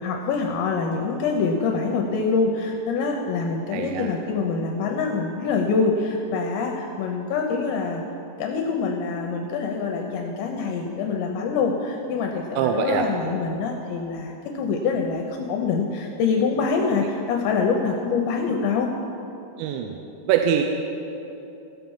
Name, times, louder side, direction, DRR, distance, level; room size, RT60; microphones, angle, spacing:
voice 1, 0.0-8.0 8.4-18.9, left 4 dB, 80° left, 2 dB, 2.8 m, -25 dB
voice 2, 3.7-4.1 12.6-13.1 19.6-20.0 20.3-20.6, right 9 dB, 80° right, 4 dB, 2.8 m, -23 dB
15.5 x 5.8 x 7.1 m, 2.9 s
omnidirectional pair, 5.4 m